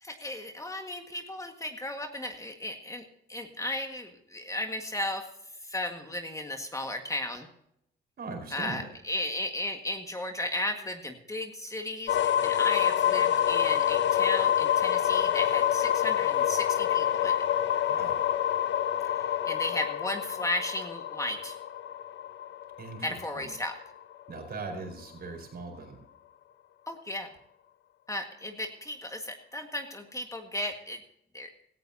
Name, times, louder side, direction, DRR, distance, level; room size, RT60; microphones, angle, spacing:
voice 1, 0.0-3.0 3.3-5.3 5.6-7.5 8.5-17.4 19.5-21.6 23.0-23.8 26.9-27.3 28.1-31.0 31.3-31.5, left 1 dB, 15° left, 5 dB, 1.7 m, -35 dB
voice 2, 8.2-8.9 17.9-18.2 22.8-23.5 24.3-26.0, right 3 dB, 50° right, 4 dB, 4.7 m, -40 dB
sound 1, 12.1-23.9, left 10 dB, 65° left, 0.7 m, -27 dB
17.0 x 14.0 x 2.8 m, 0.77 s
cardioid pair, 90°, 20 cm